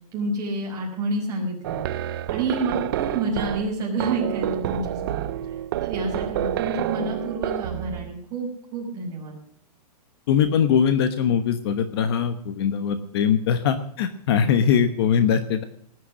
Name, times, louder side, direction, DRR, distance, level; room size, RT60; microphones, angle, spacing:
voice 1, 0.1-1.8 2.3-9.4, right 2 dB, 20° right, -2 dB, 5.3 m, -29 dB
sound 1, 1.6-8.2, right 12 dB, 35° right, 0.6 m, -29 dB
voice 2, 10.3-15.6, left 7 dB, 40° left, 10 dB, 1.1 m, -21 dB
19.0 x 9.5 x 6.3 m, 0.63 s
hypercardioid pair, 170°, 20 cm